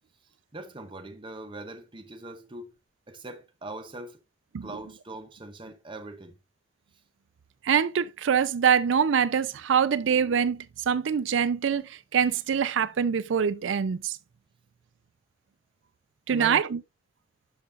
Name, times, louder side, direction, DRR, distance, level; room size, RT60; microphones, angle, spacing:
voice 1, 0.5-2.8 3.1-4.2 4.6-6.4 16.3-16.6, right 2 dB, 25° right, 0.8 m, -41 dB
voice 2, 7.6-14.2 16.3-16.8, right 7 dB, 75° right, 0.4 m, -24 dB
11.5 x 5.2 x 2.5 m
head